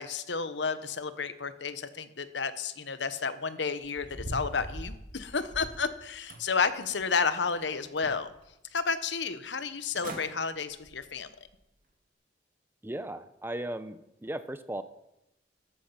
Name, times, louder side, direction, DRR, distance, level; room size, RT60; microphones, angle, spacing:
voice 1, 0.0-8.3 8.7-11.3, left 5 dB, 80° left, 12 dB, 1.1 m, -31 dB
sound 1, 3.8-5.9 6.3-7.1 7.5-8.4 8.8-8.9 9.6-9.7 9.9-10.3 10.7-11.0 11.5-11.6, right 1 dB, 50° right, 2.5 m, -42 dB
voice 2, 12.8-14.8, right 1 dB, 10° right, 12 dB, 0.7 m, -37 dB
13.5 x 13.5 x 5.9 m, 0.85 s
head